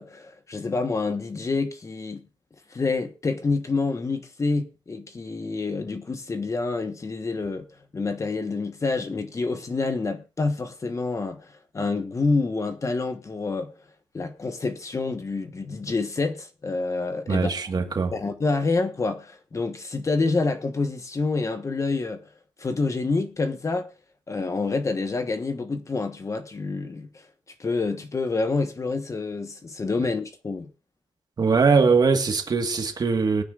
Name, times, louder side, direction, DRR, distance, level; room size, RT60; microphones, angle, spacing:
voice 1, 0.0-2.2 2.7-7.7 7.9-13.7 14.1-17.6 18.1-22.2 22.6-23.9 24.3-27.2 27.6-30.7, left 3 dB, 30° left, 1.3 m, -27 dB
voice 2, 17.3-18.1 31.4-33.4, right 4 dB, 40° right, 1.6 m, -21 dB
22.0 x 9.4 x 2.5 m
wide cardioid pair, 135°, 10 cm